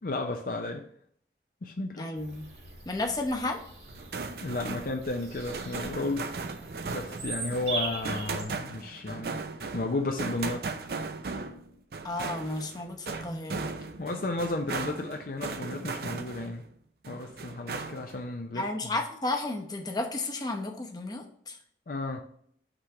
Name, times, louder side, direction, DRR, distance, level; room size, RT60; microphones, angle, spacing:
voice 1, 0.0-0.8 1.6-2.1 4.4-6.3 6.8-9.4 9.7-10.6 14.0-16.6 17.1-19.0 21.9-22.2, left 2 dB, 50° left, 3 dB, 0.5 m, -33 dB
voice 2, 2.0-2.5 2.9-3.6 12.0-13.7 18.5-21.6, left 2 dB, 20° left, 2 dB, 0.8 m, -32 dB
Bird vocalization bird call bird song, 2.1-8.4, right 3 dB, 75° right, 1.9 m, -40 dB
sound 1, 3.9-16.6 17.0-18.2, right 4 dB, 60° right, 0.5 m, -37 dB
5.9 x 3.3 x 5.9 m, 0.62 s
head